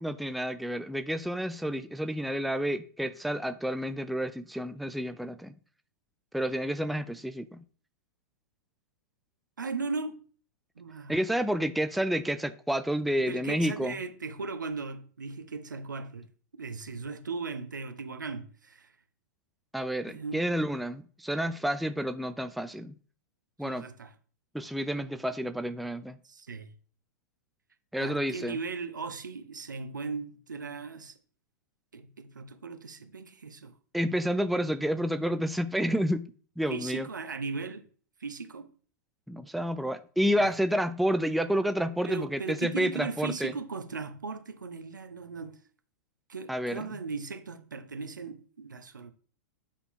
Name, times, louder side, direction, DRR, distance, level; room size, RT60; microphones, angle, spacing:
voice 1, 0.0-5.5 6.3-7.6 11.1-13.9 19.7-22.9 23.6-23.8 24.5-26.2 27.9-28.6 33.9-36.3 36.6-37.1 39.3-43.5 46.5-46.8, equal, ahead, 0.3 m, -30 dB
voice 2, 9.6-10.2 10.8-11.2 13.2-16.3 16.6-18.9 20.1-20.4 23.6-24.1 26.2-26.7 28.0-31.2 31.9-33.7 36.7-37.8 38.2-38.7 40.4-40.5 42.0-45.6 46.3-49.1, right 4 dB, 80° right, 0.9 m, -37 dB
8.1 x 4.0 x 3.8 m
figure-of-eight pair, 100°, 10 cm